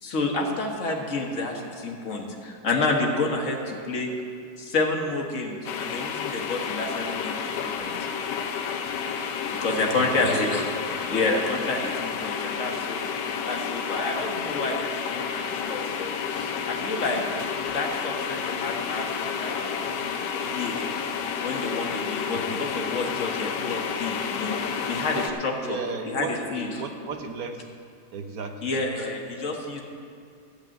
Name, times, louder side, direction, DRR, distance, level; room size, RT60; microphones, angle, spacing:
voice 1, 0.0-4.1 4.6-7.9 9.4-10.8 11.1-13.1 13.4-17.4 17.7-19.1 19.4-20.0 20.4-20.9 21.4-25.8 26.1-26.8 28.6-29.8, left 3 dB, 45° left, 1 dB, 1.6 m, -29 dB
sound 1, 5.6-25.3, left 6 dB, 70° left, 1.3 m, -30 dB
voice 2, 9.7-10.4 22.3-22.7 25.6-26.3 26.7-27.6 28.1-28.7, right 5 dB, 55° right, 5 dB, 1.2 m, -35 dB
13.5 x 5.8 x 8.9 m, 2.5 s
omnidirectional pair, 2.1 m